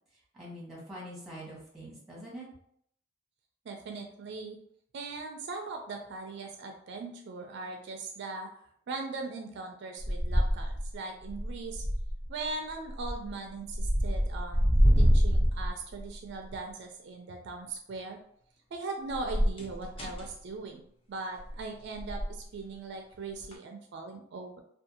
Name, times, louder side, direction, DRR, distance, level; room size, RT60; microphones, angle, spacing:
voice 1, 0.3-2.5, equal, ahead, -5 dB, 1.0 m, -44 dB
voice 2, 3.7-4.6 4.9-8.5 8.9-11.8 12.3-14.7 15.0-18.2 18.7-20.8 21.1-24.6, right 3 dB, 60° right, 4 dB, 0.3 m, -40 dB
sound 1, 10.0-10.9 11.2-12.3 12.9-13.3 13.7-16.1 19.1-20.3 21.4-21.6 22.0-22.4 23.4-23.5, equal, 30° left, 0.4 m, -26 dB
2.6 x 2.3 x 2.7 m, 0.66 s
head